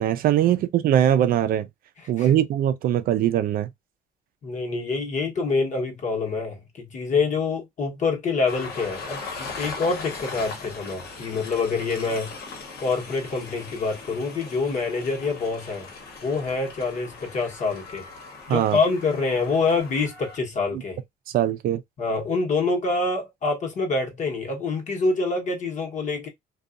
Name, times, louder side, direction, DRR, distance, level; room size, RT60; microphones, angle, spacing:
voice 1, 0.0-1.7 2.1-3.7 18.5-18.8 20.7-20.8 21.3-21.8, right 11 dB, 60° right, 0.4 m, -21 dB
voice 2, 4.4-12.3 12.8-15.9 16.2-18.1 18.5-21.0 22.0-26.3, left 4 dB, 45° left, 1.0 m, -26 dB
Train, 8.5-20.4, left 4 dB, 70° left, 1.1 m, -39 dB
2.6 x 2.3 x 2.4 m
cardioid pair, 110°, 17 cm